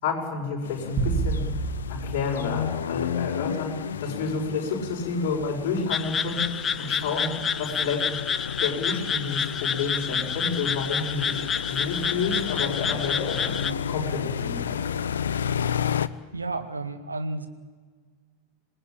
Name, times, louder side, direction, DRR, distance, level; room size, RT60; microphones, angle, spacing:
voice 1, 0.0-1.4 1.9-7.3 7.6-8.0 8.6-14.8, left 4 dB, 45° left, -2 dB, 6.3 m, -30 dB
sound 1, 0.6-16.1, left 8 dB, 65° left, 0.8 m, -32 dB
sound 2, 1.0-3.5, right 4 dB, 35° right, 3.2 m, -30 dB
sound 3, 5.9-13.7, left 7 dB, 20° left, 0.8 m, -29 dB
voice 2, 16.3-17.5, right 2 dB, 80° right, 7 dB, 1.9 m, -31 dB
26.5 x 19.0 x 9.0 m, 1.5 s
figure-of-eight pair, 90°, 0 cm